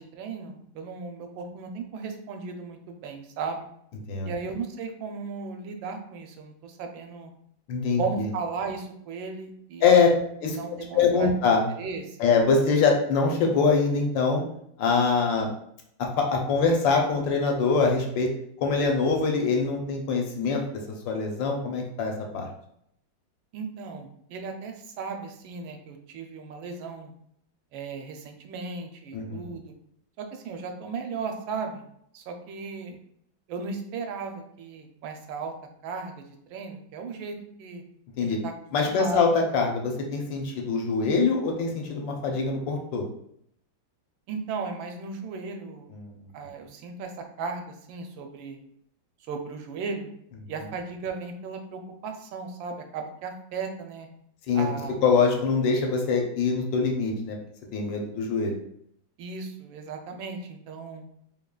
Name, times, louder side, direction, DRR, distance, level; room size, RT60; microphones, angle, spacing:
voice 1, 0.0-3.7 4.2-7.3 8.0-10.1 10.5-11.3 11.8-12.2 23.5-27.1 27.7-29.6 30.2-31.8 32.1-33.0 33.5-35.5 35.8-36.2 36.5-37.8 38.2-38.5 38.9-39.2 44.3-45.9 46.3-47.1 47.4-48.6 49.3-50.1 50.5-54.1 54.5-54.9 59.2-61.0, right 4 dB, 80° right, 4 dB, 1.4 m, -36 dB
voice 2, 7.7-8.3 9.8-10.1 10.4-11.6 12.2-14.4 14.8-15.5 16.0-18.3 18.6-20.6 21.1-22.5 29.1-29.5 38.2-38.4 38.7-43.1 45.9-46.1 54.5-54.7 55.0-57.4 57.7-58.6, left 4 dB, 75° left, 2 dB, 1.4 m, -24 dB
3.7 x 3.6 x 2.3 m, 0.71 s
omnidirectional pair, 2.1 m